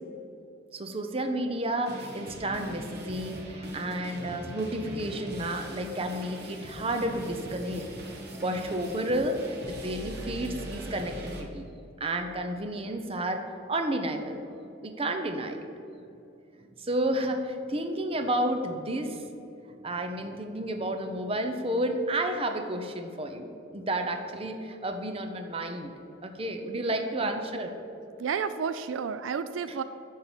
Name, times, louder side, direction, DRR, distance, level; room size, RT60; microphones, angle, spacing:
voice 1, 0.7-7.9 8.3-11.7 12.0-14.4 14.8-15.6 16.8-19.3 19.7-25.9 26.2-27.8, right 1 dB, 30° right, 6 dB, 0.7 m, -31 dB
sound 1, 1.8-11.4, right 1 dB, 55° right, 1.3 m, -41 dB
voice 2, 28.2-29.8, right 6 dB, 80° right, 12 dB, 0.4 m, -31 dB
10.5 x 3.8 x 7.2 m, 2.7 s
head